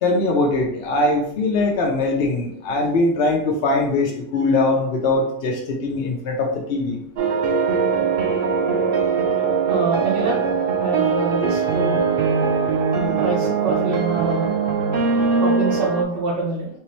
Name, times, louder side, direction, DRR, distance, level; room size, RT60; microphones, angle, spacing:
voice 1, 0.0-7.0, left 2 dB, 60° left, 0 dB, 0.8 m, -21 dB
sound 1, 7.2-16.0, right 5 dB, 55° right, 0.7 m, -21 dB
voice 2, 9.7-10.5 10.8-14.5 15.4-16.7, right 3 dB, 75° right, -5 dB, 1.2 m, -26 dB
3.6 x 3.0 x 3.0 m, 0.69 s
omnidirectional pair, 1.3 m